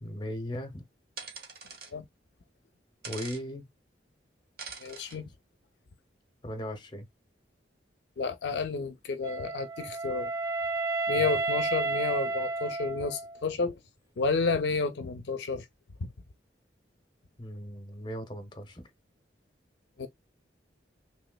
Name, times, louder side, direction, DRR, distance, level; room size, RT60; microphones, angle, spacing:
voice 1, 0.0-0.8 3.1-3.7 6.4-7.1 11.1-11.3 17.4-18.9, equal, 25° left, 0.7 m, -38 dB
sound 1, 1.2-1.9 3.0-3.4 4.6-5.2, right 5 dB, 55° right, 1.1 m, -43 dB
voice 2, 4.8-5.3 8.2-10.3 11.1-13.8 14.2-15.6 20.0-20.1, left 4 dB, 70° left, 0.5 m, -31 dB
Wind instrument woodwind instrument, 9.2-13.4, right 3 dB, 20° right, 0.3 m, -31 dB
3.2 x 3.1 x 2.2 m
head